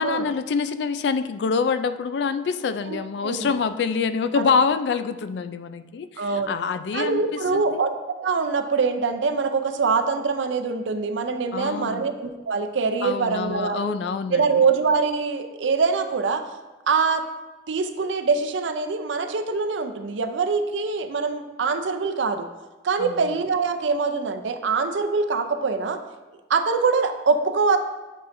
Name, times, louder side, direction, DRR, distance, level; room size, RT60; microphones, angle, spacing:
voice 1, 0.0-7.8 11.5-12.1 13.0-14.7 23.0-23.2, left 5 dB, 70° left, 11 dB, 0.3 m, -26 dB
voice 2, 2.9-3.5 4.3-4.5 6.2-6.6 6.9-13.9 14.3-16.5 16.9-17.3 17.7-22.5 22.8-26.0 26.5-27.8, right 4 dB, 90° right, 8 dB, 0.5 m, -24 dB
8.1 x 5.5 x 2.6 m, 1.2 s
head